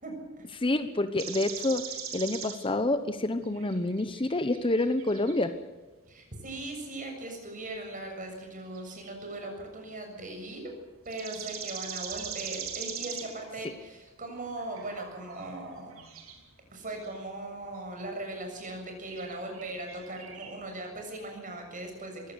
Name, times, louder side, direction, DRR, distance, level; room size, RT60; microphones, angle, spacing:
voice 1, 0.0-0.6 6.1-10.7 11.1-16.0 16.7-22.3, right 2 dB, 40° right, 3 dB, 7.1 m, -39 dB
voice 2, 0.6-1.8 2.1-5.5, left 2 dB, 25° left, 10 dB, 1.0 m, -28 dB
sound 1, 1.2-2.7 3.4-5.5 8.7-9.4 11.1-13.5 14.3-16.4 17.0-17.2 17.8-17.9 18.6-18.7 19.1-20.6, right 8 dB, 80° right, 3.8 m, -41 dB
22.5 x 17.0 x 8.2 m, 1.2 s
head